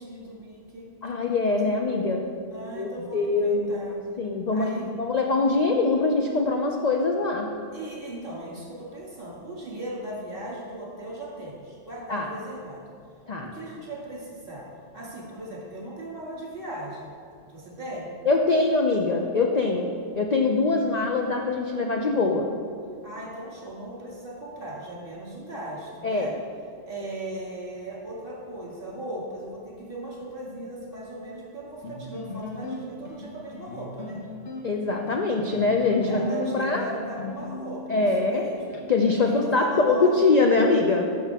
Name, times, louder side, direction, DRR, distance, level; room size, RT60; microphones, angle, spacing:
voice 1, 0.0-0.9 2.5-4.0 4.5-4.9 7.7-12.8 13.4-14.7 14.9-17.1 17.5-18.1 23.0-26.3 26.9-34.2 36.1-38.6 39.2-40.3, right 1 dB, 45° right, -5 dB, 2.3 m, -38 dB
voice 2, 1.0-2.2 2.8-3.7 4.2-7.5 12.1-12.3 13.3-13.5 18.3-22.5 26.0-26.3 34.6-36.8 37.9-38.5 38.9-41.1, left 3 dB, 50° left, 1 dB, 0.5 m, -23 dB
sound 1, 31.8-38.8, left 3 dB, 65° left, 1.3 m, -37 dB
11.5 x 6.4 x 3.5 m, 2.2 s
omnidirectional pair, 1.3 m